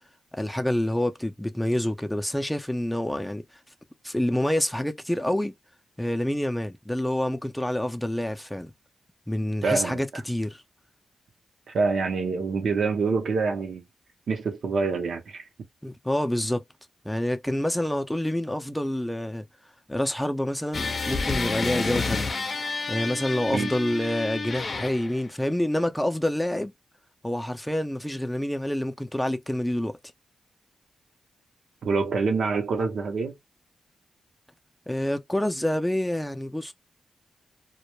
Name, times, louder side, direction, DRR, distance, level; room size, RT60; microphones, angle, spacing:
voice 1, 0.3-3.4 4.0-5.5 6.0-8.7 9.3-10.6 15.8-16.6 17.0-19.4 19.9-22.3 22.9-26.7 27.2-30.0 34.9-36.7, left 1 dB, 5° left, 0.5 m, -27 dB
voice 2, 9.6-10.0 11.7-13.8 14.3-15.4 23.5-23.7 31.8-33.3, right 4 dB, 75° right, 0.7 m, -26 dB
sound 1, 20.7-25.2, left 4 dB, 50° left, 0.6 m, -30 dB
2.2 x 2.1 x 2.9 m
cardioid pair, 60°, 0 cm